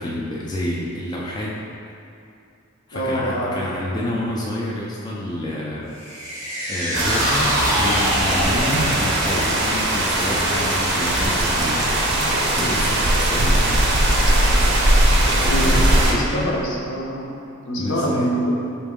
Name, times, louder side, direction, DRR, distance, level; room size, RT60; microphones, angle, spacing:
voice 1, 0.0-1.6 2.9-6.0 6.7-12.2 12.5-14.6 15.3-16.5 17.8-18.3, left 1 dB, 20° left, -5 dB, 0.3 m, -28 dB
voice 2, 2.9-3.6 15.4-17.4 17.7-18.5, equal, 65° left, -3 dB, 0.7 m, -25 dB
sound 1, 5.9-12.4 12.7-12.8, equal, 20° right, 1.3 m, -28 dB
sound 2, 6.9-16.1, right 1 dB, 55° right, 0.6 m, -19 dB
4.4 x 2.9 x 3.5 m, 2.6 s
head